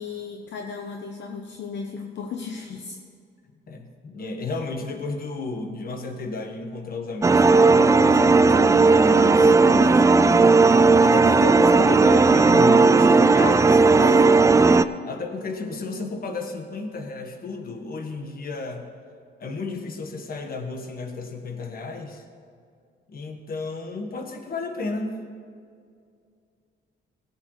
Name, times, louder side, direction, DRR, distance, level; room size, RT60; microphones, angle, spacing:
voice 1, 0.0-3.0 9.5-10.2 13.3-13.6 14.0-14.3, left 5 dB, 65° left, 2 dB, 0.9 m, -34 dB
voice 2, 3.7-9.5 11.0-14.2 15.0-18.9 19.4-22.2 23.1-25.2, left 3 dB, 45° left, 5 dB, 1.4 m, -32 dB
sound 1, 7.2-14.8, right 3 dB, 15° right, 0.3 m, -16 dB
17.0 x 8.8 x 3.2 m, 2.3 s
cardioid pair, 90°, 20 cm